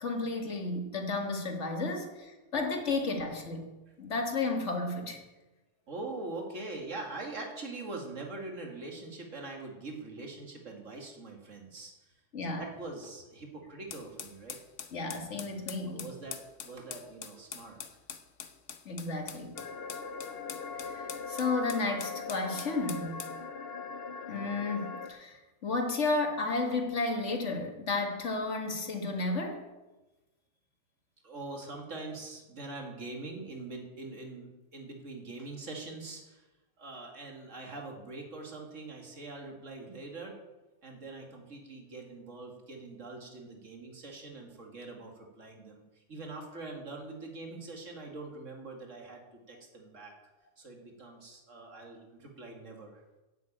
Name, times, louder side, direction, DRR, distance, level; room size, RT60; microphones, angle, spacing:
voice 1, 0.0-3.7 4.0-5.2 12.3-12.6 14.9-16.1 18.9-19.6 20.8-23.2 24.3-25.4 25.6-29.6, left 3 dB, 70° left, 3 dB, 2.0 m, -32 dB
voice 2, 2.0-2.5 5.9-12.1 12.6-14.6 15.9-16.4 16.6-17.8 31.2-36.5 36.8-40.4 40.8-49.2 49.5-50.1 50.6-53.0, right 3 dB, 90° right, 1 dB, 2.5 m, -43 dB
sound 1, 13.9-23.4, left 7 dB, 90° left, 1.3 m, -44 dB
sound 2, 19.5-25.1, left 4 dB, 55° left, 1.1 m, -40 dB
9.2 x 8.4 x 8.7 m, 1.1 s
omnidirectional pair, 1.3 m